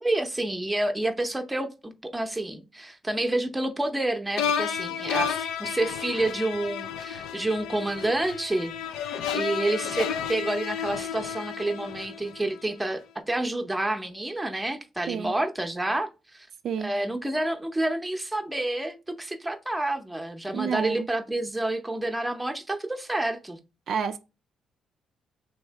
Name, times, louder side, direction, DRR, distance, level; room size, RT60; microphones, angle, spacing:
voice 1, 0.0-8.7 9.3-16.5 16.8-23.6, right 1 dB, 10° right, 0.7 m, -29 dB
sound 1, 4.4-12.6, left 8 dB, 90° left, 0.4 m, -32 dB
voice 2, 20.5-21.1 23.9-24.2, right 7 dB, 65° right, 0.3 m, -29 dB
3.1 x 2.8 x 4.5 m
cardioid pair, 90°, 0 cm